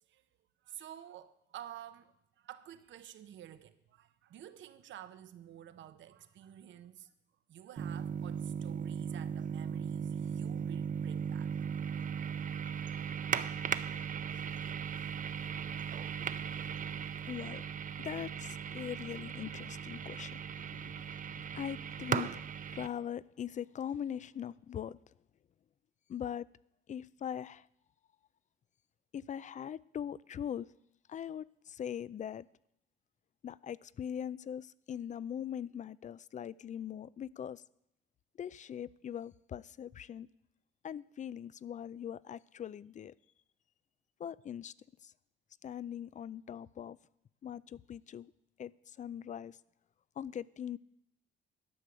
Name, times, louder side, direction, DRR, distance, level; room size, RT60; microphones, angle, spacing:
voice 1, 0.6-7.1 7.5-11.5, right 11 dB, 70° right, 0.8 m, -51 dB
sound 1, 7.8-22.9, right 7 dB, 40° right, 0.6 m, -38 dB
voice 2, 17.3-17.6 18.0-25.0 26.1-26.5 26.9-27.7 29.1-30.7 31.1-32.5 33.4-37.6 38.4-40.3 40.8-43.1 44.2-44.7 45.0-45.1 45.6-47.0 47.4-48.3 48.6-49.6 50.2-50.8, left 9 dB, 40° left, 0.4 m, -41 dB
11.5 x 6.7 x 6.1 m
cardioid pair, 90°, 20 cm